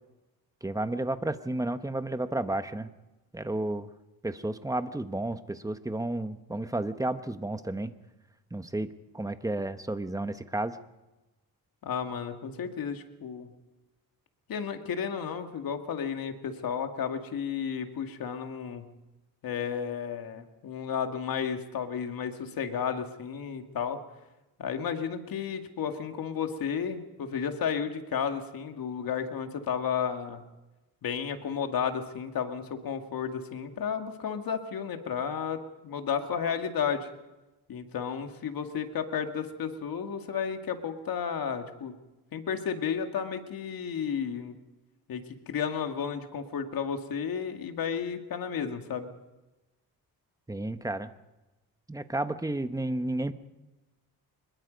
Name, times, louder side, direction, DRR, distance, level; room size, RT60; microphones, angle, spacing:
voice 1, 0.6-2.9 3.3-3.9 4.2-7.9 8.5-8.9 9.1-10.8 50.5-51.1 51.9-53.3, right 2 dB, 10° right, 10 dB, 1.1 m, -32 dB
voice 2, 11.8-13.5 14.5-18.9 19.4-24.0 24.6-30.4 31.0-37.1 37.7-41.9 42.3-44.5 45.1-49.1, left 7 dB, 65° left, 5 dB, 2.2 m, -32 dB
24.5 x 21.5 x 5.3 m, 1.1 s
cardioid pair, 120°, 37 cm